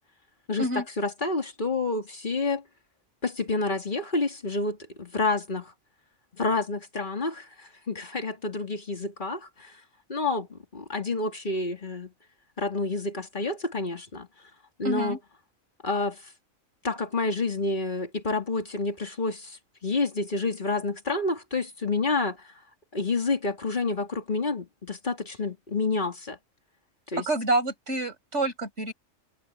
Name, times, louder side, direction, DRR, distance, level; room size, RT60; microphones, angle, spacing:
voice 1, 0.5-2.6 3.2-5.6 6.4-7.3 7.9-9.4 10.1-10.5 10.7-12.1 12.6-14.3 14.8-15.2 15.8-16.1 16.8-19.4 19.8-22.3 22.9-26.3 27.1-27.3, left 3 dB, 35° left, 3.0 m, -28 dB
voice 2, 14.8-15.2 27.2-28.9, right 2 dB, 55° right, 5.7 m, -27 dB
omnidirectional pair, 1.4 m